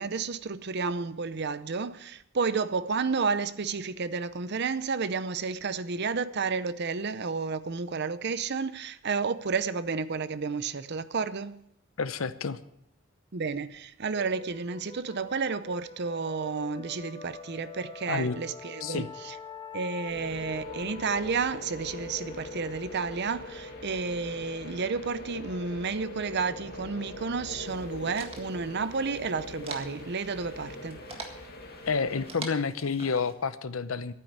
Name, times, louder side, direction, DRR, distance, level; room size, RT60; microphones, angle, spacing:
voice 1, 0.0-11.6 13.3-19.4 19.7-31.0, right 5 dB, 55° right, 0.7 m, -31 dB
voice 2, 12.0-12.6 18.1-18.4 18.8-19.1 31.9-34.1, left 5 dB, 75° left, 0.8 m, -29 dB
sound 1, 14.1-29.5, left 4 dB, 25° left, 1.4 m, -47 dB
sound 2, 20.1-32.3, left 2 dB, 50° left, 2.0 m, -43 dB
sound 3, 27.6-33.3, right 3 dB, 30° right, 1.7 m, -46 dB
12.0 x 9.4 x 8.6 m
head